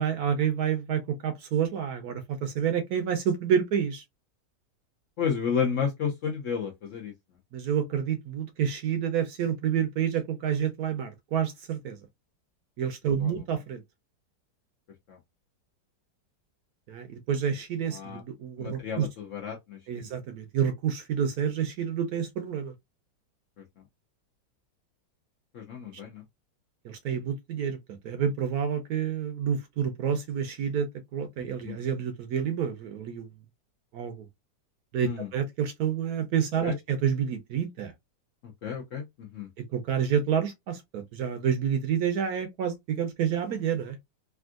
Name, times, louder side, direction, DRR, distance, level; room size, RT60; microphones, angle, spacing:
voice 1, 0.0-4.0 7.5-12.0 12.8-13.8 16.9-19.1 19.9-22.7 26.8-27.8 28.0-33.3 33.9-34.2 34.9-37.9 39.6-44.0, right 8 dB, 70° right, 1.0 m, -29 dB
voice 2, 5.2-7.1 13.2-13.3 15.1-15.2 17.9-18.2 18.6-20.1 23.6-23.7 25.5-26.2 31.6-31.8 35.0-35.3 36.6-36.7 38.4-39.5, left 6 dB, 65° left, 0.8 m, -32 dB
3.4 x 2.5 x 2.3 m
omnidirectional pair, 1.9 m